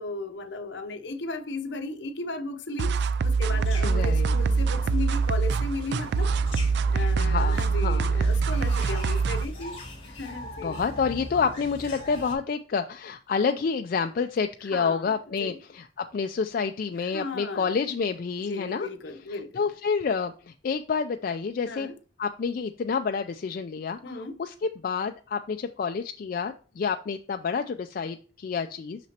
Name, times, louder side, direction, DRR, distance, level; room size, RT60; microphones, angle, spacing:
voice 1, 0.0-3.0 3.2-6.3 6.9-9.8 10.1-10.8 14.6-15.6 17.0-17.7 18.5-19.6 21.7-21.9 24.0-24.4, left 3 dB, 70° left, 0.7 m, -35 dB
sound 1, 2.8-9.4, right 4 dB, 65° right, 0.3 m, -24 dB
sound 2, 3.4-12.3, left 1 dB, 30° left, 2.4 m, -41 dB
voice 2, 3.8-4.3 7.2-8.1 8.8-8.9 10.6-18.9 19.6-21.9 22.2-24.5 24.8-29.1, left 5 dB, 50° left, 0.3 m, -29 dB
6.1 x 5.9 x 2.8 m
head